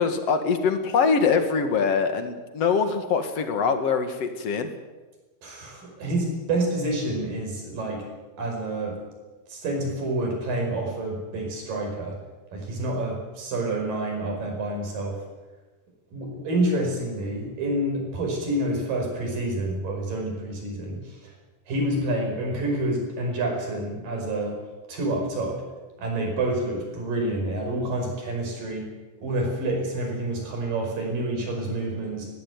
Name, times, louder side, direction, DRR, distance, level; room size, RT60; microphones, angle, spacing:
voice 1, 0.0-4.7, left 5 dB, 50° left, 7 dB, 2.6 m, -23 dB
voice 2, 5.4-8.0 8.4-9.0 9.5-12.2 12.5-15.2 16.1-21.2 21.7-24.6 24.9-25.6 26.0-28.9 29.2-32.3, right 1 dB, 80° right, 1 dB, 6.9 m, -28 dB
19.0 x 15.5 x 9.4 m, 1.2 s
omnidirectional pair, 3.8 m